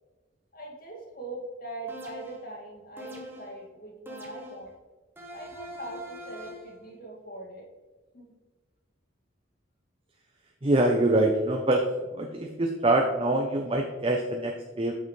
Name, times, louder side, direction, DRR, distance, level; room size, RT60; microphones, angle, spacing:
voice 1, 0.5-4.7 5.3-7.7 8.1-8.3, right 2 dB, 45° left, -1 dB, 2.2 m, -41 dB
sound 1, 1.9-2.5 3.0-3.6 4.1-4.7 5.2-6.7, equal, 10° right, 1.1 m, -43 dB
voice 2, 10.6-11.8 12.1-14.9, right 1 dB, 25° right, 2 dB, 0.6 m, -25 dB
8.7 x 6.6 x 3.2 m, 1.3 s
head